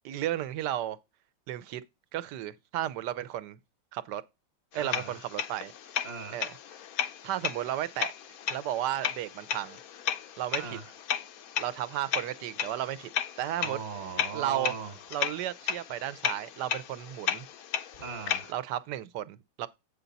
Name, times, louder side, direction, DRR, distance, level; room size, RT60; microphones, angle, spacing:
voice 1, 0.0-1.0 1.5-1.8 2.1-3.6 3.9-4.2 4.7-5.7 6.3-6.6 7.2-8.1 8.5-9.8 10.4-10.8 11.6-13.1 13.4-13.8 14.3-14.7 15.1-17.5 18.5-19.7, right 12 dB, 70° right, 1.2 m, -33 dB
sound 1, 4.7-18.5, left 9 dB, 70° left, 0.8 m, -35 dB
voice 2, 4.7-5.1 6.0-6.4 10.5-10.9 13.6-14.9 18.0-18.5, right 5 dB, 40° right, 1.4 m, -39 dB
8.2 x 5.7 x 3.9 m
omnidirectional pair, 2.1 m